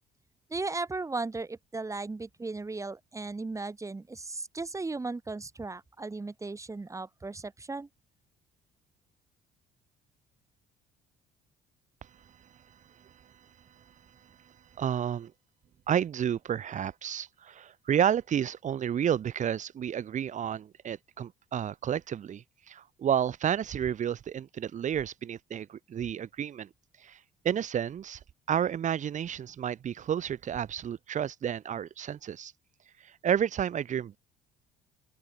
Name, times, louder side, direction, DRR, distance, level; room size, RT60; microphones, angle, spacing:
voice 1, 0.5-7.9, right 3 dB, 20° right, 4.2 m, -36 dB
voice 2, 14.2-15.3 15.9-26.7 27.0-28.2 28.5-32.5 33.0-34.2, right 9 dB, 45° right, 1.7 m, -31 dB
open air
cardioid pair, 110°, 17 cm